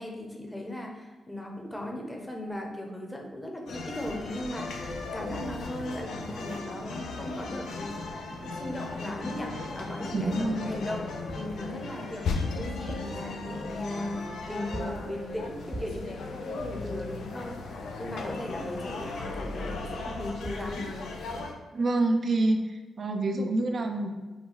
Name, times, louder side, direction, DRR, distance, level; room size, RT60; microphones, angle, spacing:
voice 1, 0.0-14.2 14.4-20.9, left 1 dB, 10° left, 1 dB, 1.1 m, -37 dB
sound 1, 3.7-21.5, left 3 dB, 75° left, 0.5 m, -36 dB
voice 2, 10.1-10.7 21.7-24.1, right 2 dB, 55° right, 4 dB, 0.6 m, -27 dB
sound 2, 11.3-11.6 12.7-13.3 14.7-15.1 15.7-16.1 20.1-20.2 20.4-20.8, right 1 dB, 15° right, 0.6 m, -40 dB
5.2 x 2.3 x 3.9 m, 1.2 s
supercardioid pair, 45°, 0 cm